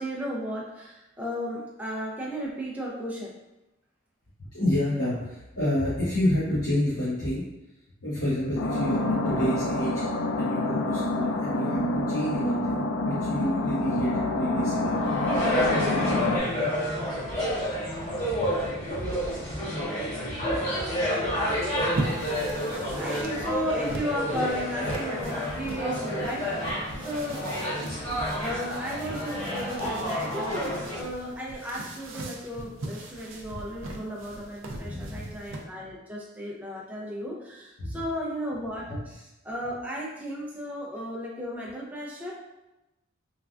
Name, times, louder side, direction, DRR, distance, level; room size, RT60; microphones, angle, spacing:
voice 1, 0.0-3.3 22.9-27.4 28.4-42.3, equal, 5° right, -4 dB, 0.4 m, -34 dB
voice 2, 4.5-7.4 8.0-10.0 10.4-16.3 18.2-18.5 18.9-19.4 20.2-20.6 21.1-21.2 27.9-28.2 34.8-35.4 37.8-37.9 38.9-39.0, left 1 dB, 65° left, -11 dB, 0.9 m, -30 dB
sound 1, 8.6-16.4, left 2 dB, 85° left, 0.4 m, -27 dB
sound 2, 15.0-31.0, equal, 35° left, 1.2 m, -29 dB
sound 3, 21.5-35.6, right 2 dB, 65° right, 0.4 m, -39 dB
3.2 x 2.3 x 2.4 m, 0.97 s
head